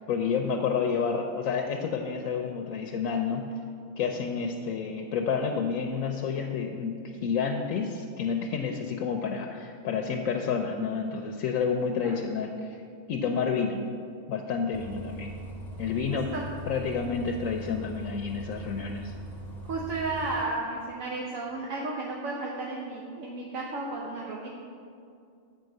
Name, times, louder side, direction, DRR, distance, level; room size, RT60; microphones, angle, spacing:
voice 1, 0.1-3.5 4.0-12.8 13.1-13.8 14.3-15.3 15.8-16.3 16.7-19.1, left 6 dB, 90° left, 3 dB, 1.0 m, -29 dB
Bus, 14.7-20.4, right 1 dB, ahead, 1.4 m, -41 dB
voice 2, 19.7-24.5, right 2 dB, 80° right, -3 dB, 1.2 m, -33 dB
7.9 x 4.7 x 6.4 m, 2.4 s
omnidirectional pair, 1.4 m